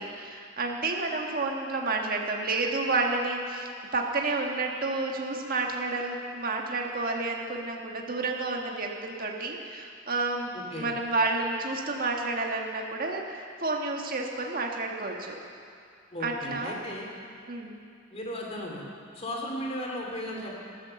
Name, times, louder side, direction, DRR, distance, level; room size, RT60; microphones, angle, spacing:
voice 1, 0.0-15.3 16.2-16.8 17.5-17.8, right 3 dB, 45° right, 1 dB, 1.6 m, -30 dB
voice 2, 10.5-10.9 16.1-17.1 18.1-18.8 19.1-20.6, left 1 dB, 30° left, -1 dB, 2.7 m, -36 dB
14.0 x 12.5 x 7.0 m, 2.4 s
head